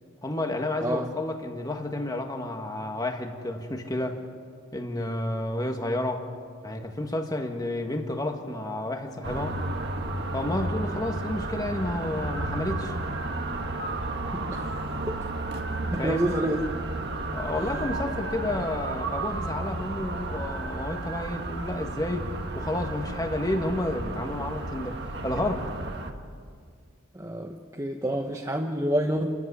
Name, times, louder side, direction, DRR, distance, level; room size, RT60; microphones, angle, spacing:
voice 1, 0.2-4.2 4.7-6.2 6.6-9.6 10.3-12.9 16.0-16.3 17.3-22.3 22.6-25.0 25.2-25.7, left 1 dB, 15° left, 4 dB, 1.7 m, -30 dB
sound 1, 9.2-26.1, right 2 dB, 50° right, 1.7 m, -32 dB
voice 2, 14.3-14.8 15.1-15.2 15.8-16.6 27.1-29.3, right 1 dB, 15° right, 1 dB, 1.0 m, -28 dB
29.0 x 14.0 x 9.9 m, 2.1 s
head